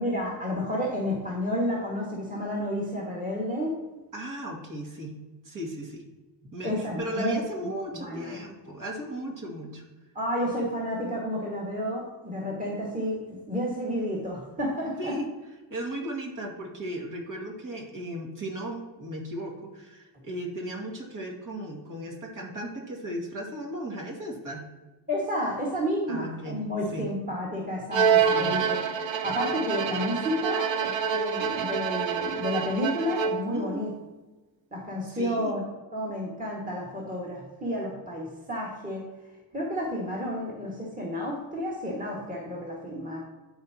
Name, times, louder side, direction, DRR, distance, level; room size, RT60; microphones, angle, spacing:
voice 1, 0.0-3.7 6.6-7.4 7.7-8.4 10.1-13.2 13.5-15.1 25.1-33.9 34.7-35.6 35.9-39.0 39.5-43.2, equal, 20° right, -5 dB, 2.1 m, -31 dB
voice 2, 4.1-5.1 5.4-6.0 6.4-9.8 15.0-15.3 15.7-24.6 26.1-26.6 26.9-27.1 28.3-28.6 33.5-33.9 35.1-35.6, right 1 dB, 45° right, -1 dB, 2.4 m, -36 dB
Bowed string instrument, 27.9-33.6, right 7 dB, 80° right, 0.9 m, -27 dB
12.5 x 4.8 x 3.0 m, 1.2 s
cardioid pair, 80°, 45 cm